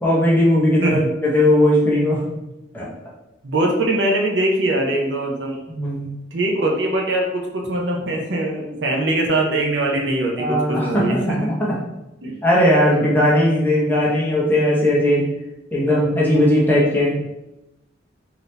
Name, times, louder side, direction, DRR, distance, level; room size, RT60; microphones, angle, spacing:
voice 1, 0.0-2.2 2.7-2.9 5.7-6.1 10.4-11.8 12.4-15.3 15.7-17.1, left 1 dB, 10° left, -6 dB, 0.9 m, -18 dB
voice 2, 3.4-5.6 6.3-11.5 12.2-12.3, right 1 dB, 70° right, 0 dB, 0.8 m, -22 dB
4.0 x 2.8 x 3.3 m, 0.92 s
head